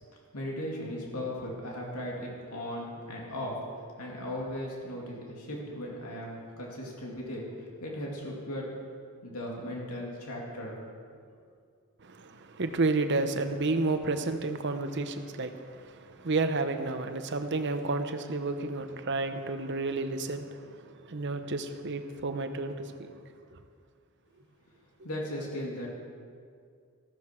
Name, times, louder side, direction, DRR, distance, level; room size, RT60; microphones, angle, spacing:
voice 1, 0.3-3.5 4.0-8.7 9.2-10.8 11.1-11.2 25.0-26.0, left 1 dB, 85° left, -2 dB, 2.5 m, -37 dB
voice 2, 12.0-23.1 23.5-23.6, right 3 dB, 50° right, 8 dB, 0.8 m, -31 dB
14.0 x 13.5 x 4.5 m, 2.2 s
head